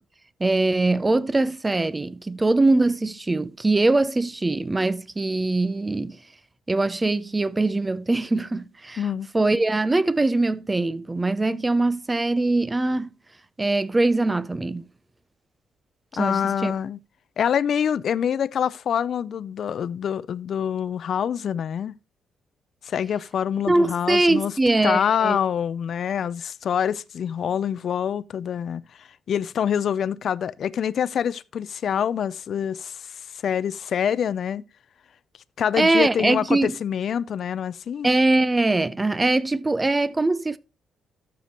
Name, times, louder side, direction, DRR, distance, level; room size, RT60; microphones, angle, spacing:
voice 1, 0.4-6.2 6.7-9.0 9.3-13.1 13.6-14.9 16.1-16.7 23.7-25.4 35.8-36.7 38.0-40.6, right 2 dB, 15° right, 0.4 m, -22 dB
voice 2, 9.0-9.3 16.2-17.0 17.4-21.9 22.8-24.5 24.8-33.2 33.4-34.6 35.6-38.1, left 8 dB, 55° left, 0.4 m, -26 dB
12.5 x 6.8 x 2.9 m
cardioid pair, 135°, 0 cm